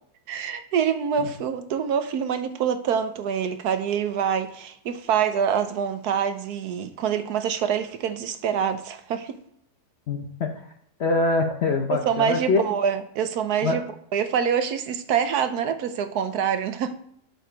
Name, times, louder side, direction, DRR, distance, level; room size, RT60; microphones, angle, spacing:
voice 1, 0.3-9.4 11.9-13.8 14.1-16.9, right 8 dB, 70° right, 9 dB, 1.1 m, -25 dB
voice 2, 10.1-10.5 11.0-12.6 13.6-13.8, left 3 dB, 60° left, 4 dB, 0.7 m, -24 dB
7.8 x 4.7 x 5.0 m, 0.69 s
omnidirectional pair, 1.8 m